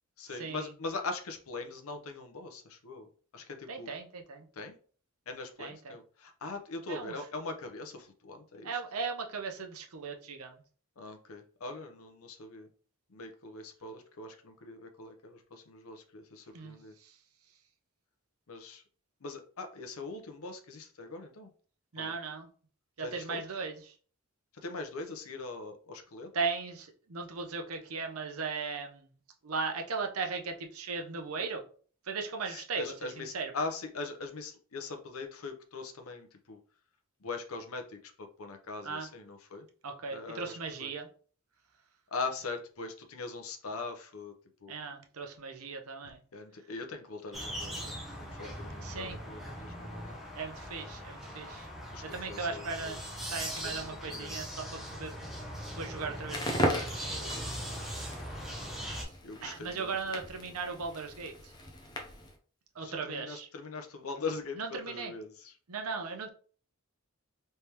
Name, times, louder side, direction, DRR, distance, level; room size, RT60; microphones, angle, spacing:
voice 1, 0.2-3.1 3.3-3.9 4.5-4.8 5.3-8.8 11.0-12.7 13.1-16.9 18.5-18.8 19.2-21.5 22.0-22.2 23.0-23.4 24.5-26.3 32.5-36.6 37.2-39.7 40.1-40.9 42.1-44.3 44.6-44.8 46.3-50.2 51.9-53.0 53.5-54.4 59.2-59.9 62.8-65.6, left 3 dB, 80° left, 6 dB, 0.7 m, -41 dB
voice 2, 3.7-4.5 5.6-6.0 6.9-7.1 8.6-10.6 16.5-17.2 21.9-22.5 23.0-23.9 26.3-29.1 29.4-31.6 32.1-32.8 33.2-33.5 38.8-39.1 39.8-41.1 44.7-46.2 48.8-49.2 50.3-51.7 52.0-55.1 55.8-57.3 57.7-58.1 59.0-59.1 59.4-61.5 62.7-63.5 64.6-65.1 65.7-66.3, right 4 dB, 85° right, 3 dB, 0.7 m, -37 dB
sound 1, 47.3-59.0, equal, ahead, 0.9 m, -40 dB
Crackle, 56.2-62.4, equal, 20° left, 0.5 m, -37 dB
3.4 x 3.3 x 2.9 m, 0.42 s
head